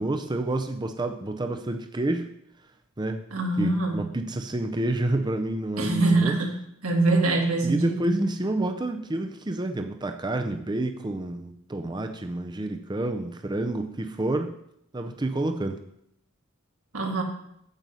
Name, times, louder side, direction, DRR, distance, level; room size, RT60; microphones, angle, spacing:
voice 1, 0.0-2.3 3.0-3.2 3.6-6.3 7.6-14.5 14.9-15.8, right 1 dB, 20° right, 6 dB, 0.5 m, -29 dB
voice 2, 3.3-4.1 5.8-6.5 6.8-8.1 16.9-17.2, right 2 dB, 85° right, 1 dB, 2.2 m, -23 dB
9.1 x 7.7 x 5.4 m, 0.74 s
head